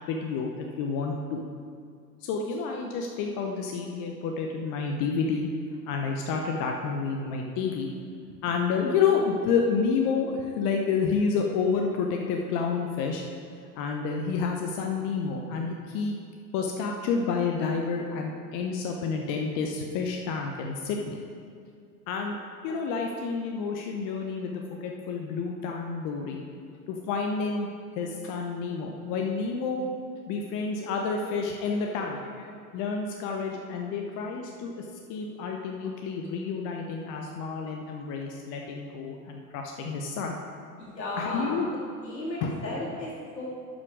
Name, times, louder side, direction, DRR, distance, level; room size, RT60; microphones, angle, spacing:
voice 1, 0.1-1.4 2.2-5.5 5.9-7.9 8.4-13.2 13.8-16.2 16.5-21.2 22.1-22.4 22.6-26.4 26.9-27.7 28.0-29.9 30.3-40.4 41.2-41.7 42.4-42.5, left 5 dB, 40° left, 2 dB, 0.9 m, -29 dB
voice 2, 40.8-41.6 42.0-43.5, left 2 dB, 80° left, -6 dB, 2.5 m, -35 dB
11.5 x 6.4 x 4.7 m, 2.3 s
figure-of-eight pair, 80°, 50 cm